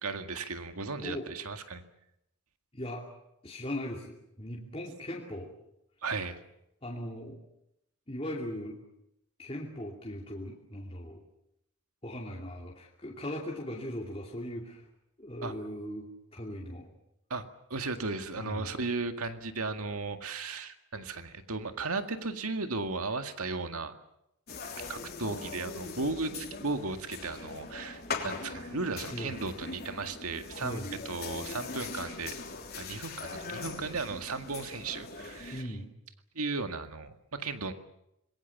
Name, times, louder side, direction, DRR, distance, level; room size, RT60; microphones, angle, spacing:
voice 1, 0.0-1.8 6.0-6.4 15.4-15.5 17.3-17.5 17.7-23.9 24.8-30.8 31.1-32.4 32.8-35.8 36.4-37.7, right 3 dB, 80° right, 7 dB, 2.0 m, -35 dB
voice 2, 2.7-3.1 3.4-5.5 6.8-7.4 8.1-8.8 9.4-11.2 12.0-14.8 15.2-16.9 18.4-18.7 29.1-29.3 30.6-30.9 35.5-35.9, left 1 dB, 25° left, -3 dB, 2.7 m, -39 dB
sound 1, 24.5-35.6, left 4 dB, 45° left, 3.5 m, -41 dB
25.5 x 22.0 x 7.2 m, 0.82 s
head